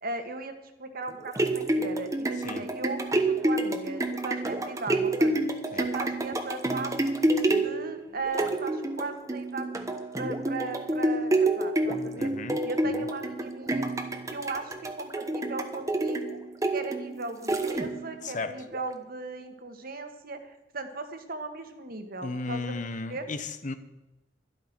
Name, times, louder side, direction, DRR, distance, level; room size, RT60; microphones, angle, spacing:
voice 1, 0.0-5.4 5.7-7.2 7.5-9.7 10.1-12.3 12.6-13.9 14.3-16.4 16.7-22.7 23.1-23.3, right 3 dB, 55° right, 7 dB, 1.6 m, -37 dB
sound 1, 1.1-18.2 18.7-18.8, right 2 dB, 20° right, 1.1 m, -28 dB
voice 2, 12.2-12.6 12.8-13.0 18.2-18.5 22.2-23.7, left 3 dB, 45° left, 11 dB, 0.9 m, -35 dB
12.0 x 12.0 x 6.1 m, 1.0 s
head